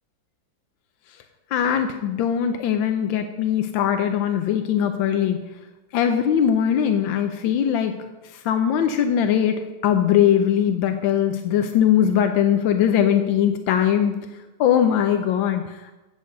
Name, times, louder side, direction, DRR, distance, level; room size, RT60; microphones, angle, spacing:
voice 1, 1.5-5.4 5.9-7.9 8.2-14.1 14.6-16.0, left 9 dB, 85° left, 6 dB, 1.4 m, -21 dB
8.3 x 6.3 x 6.7 m, 1.1 s
omnidirectional pair, 2.1 m